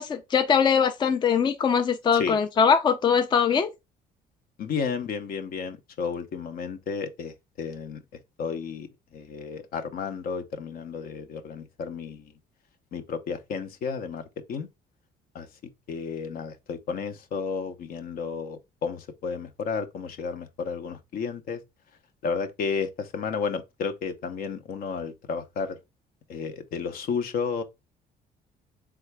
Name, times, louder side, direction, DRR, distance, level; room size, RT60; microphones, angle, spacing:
voice 1, 0.0-3.7, left 6 dB, 25° left, 0.4 m, -22 dB
voice 2, 4.6-8.0 8.4-12.3 12.9-14.7 15.3-15.5 15.9-21.6 22.2-25.8 26.3-27.6, left 5 dB, 60° left, 0.7 m, -32 dB
3.7 x 3.4 x 3.3 m
cardioid pair, 110°, 17 cm